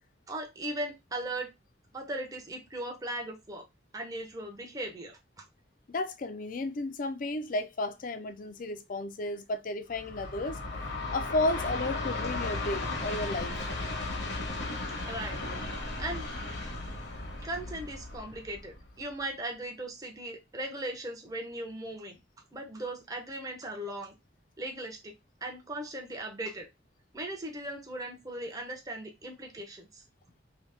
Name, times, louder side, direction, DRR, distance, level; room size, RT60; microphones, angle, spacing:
voice 1, 0.3-1.5 1.9-3.6 3.9-5.4 15.1-15.4 16.0-16.3 17.4-22.2 22.5-24.1 24.6-25.1 25.4-26.7 27.1-30.0, right 1 dB, 20° right, 0.6 m, -38 dB
voice 2, 5.9-10.6 11.1-13.6, left 2 dB, 45° left, 0.4 m, -33 dB
Train, 9.9-19.1, left 2 dB, 65° left, 1.0 m, -36 dB
2.8 x 2.7 x 3.3 m
head